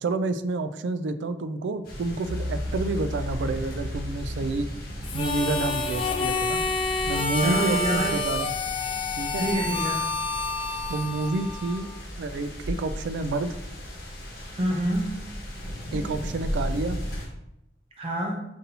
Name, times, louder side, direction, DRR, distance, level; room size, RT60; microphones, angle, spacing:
voice 1, 0.0-4.7 5.1-6.6 7.1-8.5 9.2-9.4 10.9-11.9 12.2-13.6 15.9-17.0, right 2 dB, 80° right, 11 dB, 0.3 m, -29 dB
sound 1, 1.8-17.3, equal, 55° left, 1.1 m, -37 dB
sound 2, 2.2-8.2, left 1 dB, 80° left, 0.7 m, -36 dB
Harmonica, 5.0-12.0, left 3 dB, 30° left, 0.4 m, -28 dB
voice 2, 7.4-8.2 9.4-10.1 14.5-15.2 18.0-18.4, right 1 dB, 35° right, 0 dB, 0.6 m, -27 dB
5.2 x 2.6 x 2.8 m, 0.83 s
head